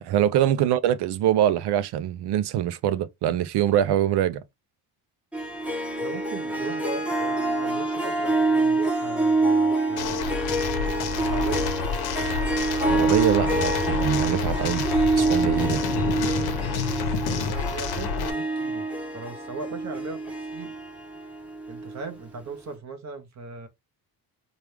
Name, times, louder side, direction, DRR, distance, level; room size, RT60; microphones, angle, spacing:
voice 1, 0.0-4.4 12.8-14.9 15.2-15.8, right 11 dB, 75° right, 0.6 m, -24 dB
Harp, 5.3-22.1, right 2 dB, 5° right, 0.9 m, -26 dB
voice 2, 6.0-10.2 11.3-11.7 17.1-18.9 19.1-20.2 20.5-20.7 21.7-23.7, right 4 dB, 40° right, 1.1 m, -38 dB
sound 1, 10.0-18.3, left 6 dB, 70° left, 0.9 m, -29 dB
4.8 x 2.4 x 3.3 m
cardioid pair, 165°, 40 cm